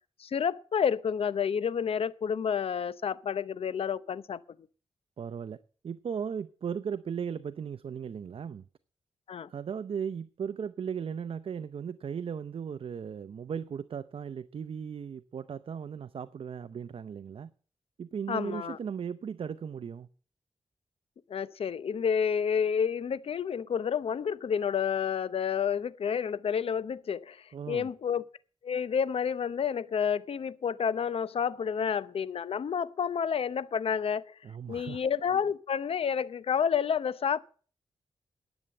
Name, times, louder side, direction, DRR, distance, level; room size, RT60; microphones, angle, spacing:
voice 1, 0.2-4.4 9.3-9.5 18.3-18.8 21.3-28.2 28.6-34.3 34.7-37.4, left 7 dB, 70° left, 0.7 m, -30 dB
voice 2, 5.2-5.6 5.8-8.6 9.5-17.5 18.0-20.1 27.5-27.9 34.4-35.0, right 7 dB, 65° right, 0.6 m, -37 dB
11.0 x 8.2 x 7.7 m
cardioid pair, 85°, 10 cm